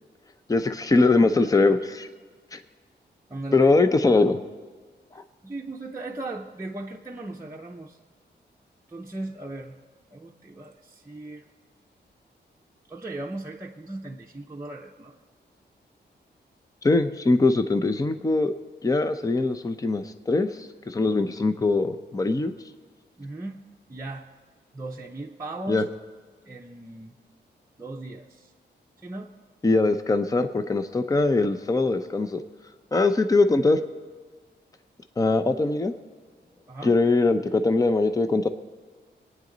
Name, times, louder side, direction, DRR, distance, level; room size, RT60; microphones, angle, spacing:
voice 1, 0.5-2.1 2.5-2.6 3.5-4.4 16.8-18.5 18.8-22.5 25.7-25.8 29.6-32.4 32.9-33.8 35.2-35.9 36.8-38.5, left 3 dB, 20° left, 10 dB, 0.6 m, -22 dB
voice 2, 3.3-3.7 5.4-8.0 8.9-9.8 10.1-11.4 12.9-15.1 23.2-23.6 23.9-24.3 24.7-25.8 26.4-27.1 27.8-28.5 29.0-29.3 36.7-37.0, right 2 dB, 15° right, -1 dB, 0.7 m, -37 dB
24.5 x 9.5 x 3.9 m, 1.5 s
wide cardioid pair, 140°, 18 cm